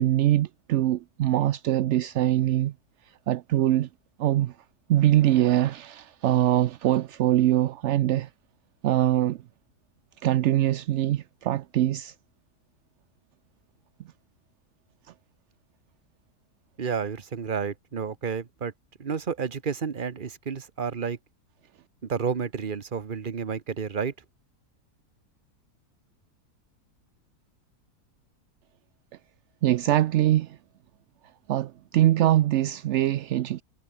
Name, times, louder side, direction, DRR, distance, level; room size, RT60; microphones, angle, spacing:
voice 1, 0.0-2.7 3.3-3.9 4.2-4.5 4.9-8.3 8.8-9.4 10.2-12.1 29.6-30.6 31.5-33.6, right 13 dB, 65° right, 0.7 m, -23 dB
voice 2, 16.8-18.7 19.0-21.2 22.0-24.1, right 6 dB, 35° right, 1.2 m, -30 dB
omnidirectional pair, 1.6 m